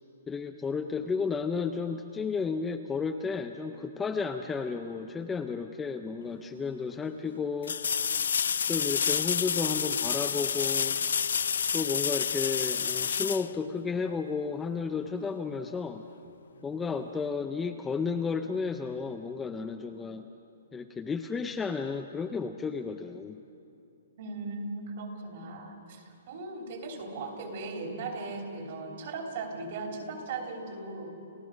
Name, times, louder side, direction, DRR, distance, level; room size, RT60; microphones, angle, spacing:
voice 1, 0.3-7.8 8.6-11.0 11.7-16.0 16.6-20.2 20.7-23.4, left 5 dB, 5° left, 6 dB, 0.4 m, -33 dB
sound 1, 6.3-6.4 7.6-14.2 17.1-17.2, left 7 dB, 75° left, 0.5 m, -29 dB
voice 2, 24.2-31.1, right 3 dB, 40° right, 2 dB, 3.0 m, -38 dB
30.0 x 15.5 x 6.3 m, 2.7 s
hypercardioid pair, 175°, 0 cm